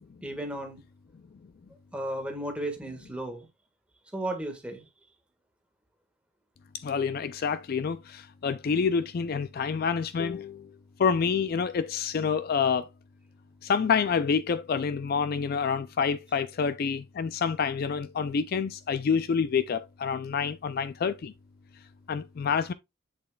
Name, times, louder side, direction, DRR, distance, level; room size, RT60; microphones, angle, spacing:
voice 1, 0.2-0.8 1.9-3.5 4.1-4.9, right 1 dB, 5° right, 1.6 m, -34 dB
voice 2, 6.8-10.7 11.0-12.9 13.6-21.3 22.1-22.7, left 6 dB, 45° left, 0.3 m, -27 dB
7.8 x 7.0 x 2.3 m
head